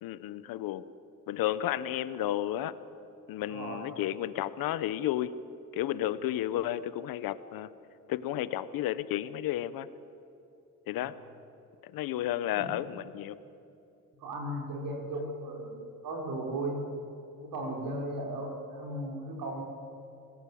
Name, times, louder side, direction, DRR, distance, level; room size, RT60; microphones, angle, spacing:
voice 1, 0.0-0.9 1.3-2.7 3.3-5.3 5.7-7.7 8.1-9.9 10.9-11.1 11.8-13.4, left 12 dB, 85° left, 15 dB, 1.0 m, -32 dB
voice 2, 3.5-3.9 10.9-11.1 12.5-12.7 14.2-16.8 17.4-19.6, right 1 dB, 80° right, 1 dB, 5.6 m, -36 dB
27.0 x 17.5 x 8.6 m, 2.7 s
cardioid pair, 80°, 34 cm